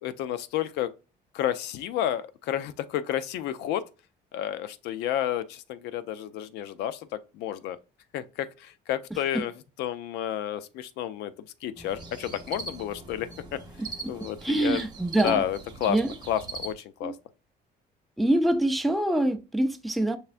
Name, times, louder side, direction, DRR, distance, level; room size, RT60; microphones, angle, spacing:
voice 1, 0.0-0.9 1.3-3.8 4.3-7.1 7.3-7.8 8.1-9.5 9.8-13.6 14.1-14.8 15.2-16.0 16.3-17.1, left 11 dB, 85° left, 0.4 m, -31 dB
sound 1, 11.7-16.7, right 4 dB, 25° right, 0.9 m, -41 dB
voice 2, 14.4-15.4 15.9-16.1 17.0-17.1 18.2-20.2, right 1 dB, ahead, 0.4 m, -25 dB
5.6 x 3.2 x 2.4 m
cardioid pair, 110°, 17 cm